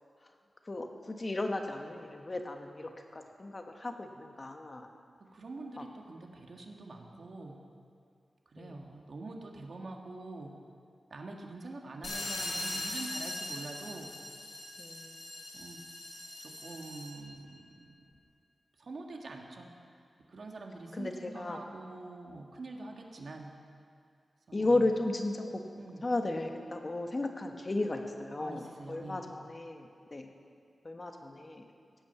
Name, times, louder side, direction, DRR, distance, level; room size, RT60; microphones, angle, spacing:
voice 1, 0.6-4.9 5.8-5.9 8.6-8.9 14.8-15.4 20.9-21.6 24.5-25.6 26.0-30.3 30.8-31.7, left 2 dB, 35° left, 4 dB, 1.4 m, -35 dB
voice 2, 5.2-7.6 8.5-10.5 11.1-14.1 15.5-15.8 16.4-18.1 18.8-19.7 20.3-23.5 24.5-24.9 25.7-26.0 28.4-29.3, right 2 dB, 65° right, 1 dB, 1.8 m, -45 dB
sound 1, 12.0-17.3, left 1 dB, 80° left, 4.7 m, -40 dB
17.0 x 8.9 x 7.1 m, 2.3 s
wide cardioid pair, 85°, 0 cm